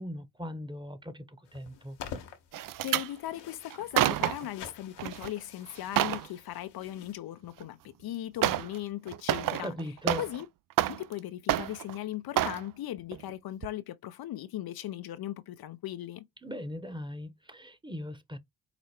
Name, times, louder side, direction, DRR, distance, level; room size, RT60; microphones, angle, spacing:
voice 1, 0.0-2.0 9.4-10.2 16.4-18.4, left 1 dB, 10° right, 1.0 m, -39 dB
sound 1, 1.5-7.1, left 7 dB, 80° left, 1.1 m, -48 dB
sound 2, 2.5-3.1 3.7-4.5 5.0-5.3 5.7-6.3 7.6-7.7 8.4-8.8 9.1-10.4 10.7-11.2 11.5-12.0 12.4-12.6 13.1-13.3 13.6-13.7, right 13 dB, 55° right, 0.5 m, -29 dB
voice 2, 2.8-9.7 10.2-10.5 10.9-16.3, left 13 dB, 60° left, 0.6 m, -38 dB
5.0 x 2.1 x 4.3 m
supercardioid pair, 50°, 42 cm